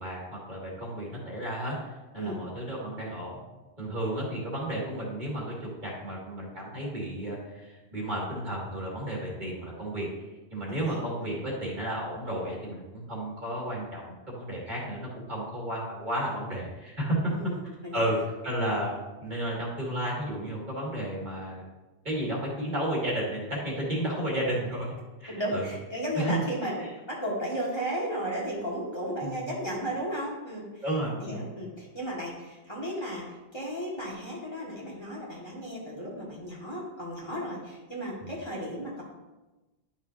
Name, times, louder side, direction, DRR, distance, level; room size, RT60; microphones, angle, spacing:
voice 1, 0.0-1.8 2.1-3.3 3.8-10.1 10.5-17.3 17.9-21.6 22.0-24.9 25.2-25.7 26.1-26.4 26.8-26.9 29.2-29.4 30.8-31.5 38.2-38.3, right 1 dB, 45° right, -4 dB, 2.2 m, -32 dB
voice 2, 10.7-11.0 17.3-18.1 25.3-26.8 27.1-30.8 31.1-39.0, equal, 25° left, -4 dB, 1.7 m, -34 dB
11.0 x 6.1 x 2.7 m, 1.1 s
omnidirectional pair, 1.2 m